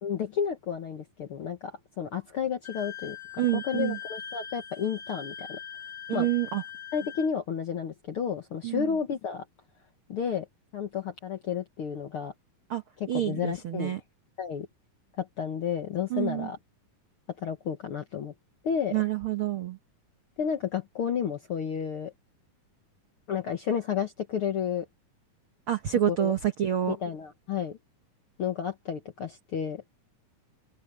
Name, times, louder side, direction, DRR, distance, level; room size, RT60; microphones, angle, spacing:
voice 1, 0.0-3.2 3.5-5.6 6.1-6.3 6.9-9.4 10.1-10.4 10.7-12.3 13.0-13.9 14.4-14.7 15.2-16.6 17.4-18.3 18.6-19.0 20.4-22.1 23.3-24.9 26.1-26.3 26.9-27.8 28.4-29.8, left 7 dB, 65° left, 1.4 m, -31 dB
Wind instrument woodwind instrument, 2.6-7.3, left 8 dB, 25° left, 1.5 m, -41 dB
voice 2, 3.4-4.0 6.1-6.6 8.6-8.9 12.7-12.8 13.1-14.0 16.1-16.5 18.9-19.8 25.7-27.0, right 12 dB, 75° right, 1.2 m, -27 dB
omnidirectional pair, 4.1 m